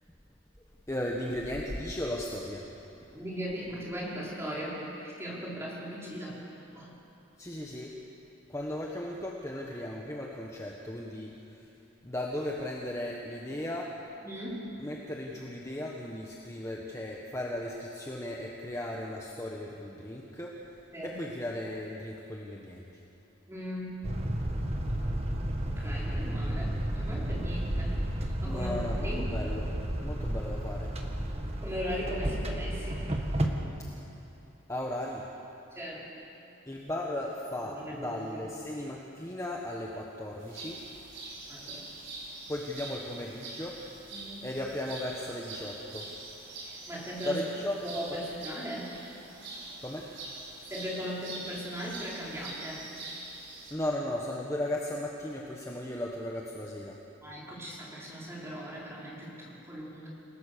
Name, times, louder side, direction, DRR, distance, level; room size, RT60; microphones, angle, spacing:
voice 1, 0.9-2.7 3.1-3.2 7.4-8.0 8.5-11.7 12.0-14.0 14.8-20.7 21.0-22.9 28.4-31.0 34.7-35.3 36.7-40.8 42.5-43.8 44.4-46.1 47.2-48.2 49.8-50.1 53.7-57.0, left 1 dB, 15° left, -2 dB, 1.4 m, -36 dB
voice 2, 3.1-6.4 6.7-6.9 14.2-14.7 20.9-21.2 23.5-24.2 25.8-28.0 28.4-29.3 31.6-33.1 35.7-36.0 37.6-38.4 41.5-41.9 44.1-44.4 46.6-47.4 47.8-48.8 50.7-52.8 57.2-60.1, equal, 15° right, -6 dB, 5.0 m, -38 dB
sound 1, 24.0-33.5, right 1 dB, 30° right, 1.7 m, -32 dB
sound 2, 40.4-53.7, right 2 dB, 60° right, 6.1 m, -44 dB
28.5 x 18.0 x 6.9 m, 2.9 s
head